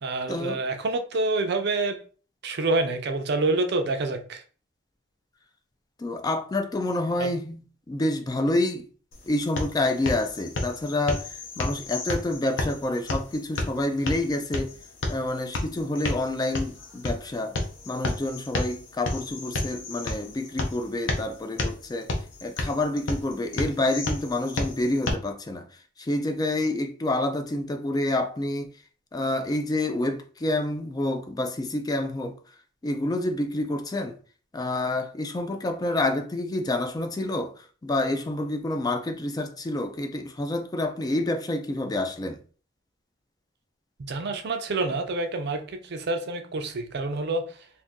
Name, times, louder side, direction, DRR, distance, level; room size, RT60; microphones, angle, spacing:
voice 1, 0.0-2.0 2.4-4.4 7.2-7.3 44.0-47.7, right 2 dB, 60° right, 0.5 m, -27 dB
voice 2, 6.0-7.6 7.9-8.9 9.3-14.7 15.1-17.6 17.9-28.7 29.1-32.6 32.8-34.2 34.5-42.4, left 2 dB, 20° left, 0.3 m, -28 dB
sound 1, 9.1-25.1, left 2 dB, 70° left, 0.7 m, -32 dB
2.6 x 2.5 x 3.6 m
head